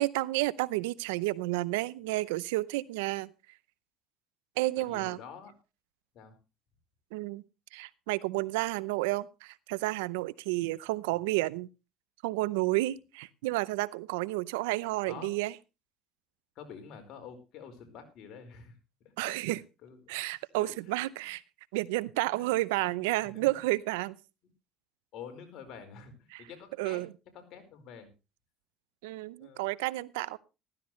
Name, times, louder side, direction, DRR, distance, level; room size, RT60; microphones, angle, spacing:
voice 1, 0.0-3.3 4.6-5.2 7.1-7.4 7.7-11.7 12.2-15.5 19.2-19.6 20.1-21.4 21.7-24.2 26.3-26.4 26.8-27.1 29.0-30.4, right 19 dB, 90° right, 20 dB, 0.6 m, -31 dB
voice 2, 4.8-5.5 6.1-6.4 15.1-15.3 16.5-18.7 19.2-19.4 19.8-20.2 20.6-20.9 22.3-22.5 23.2-23.6 25.1-27.0 27.3-28.1 29.4-29.6, left 6 dB, 60° left, 6 dB, 4.6 m, -47 dB
14.5 x 14.5 x 3.2 m, 0.28 s
supercardioid pair, 90°, 0 cm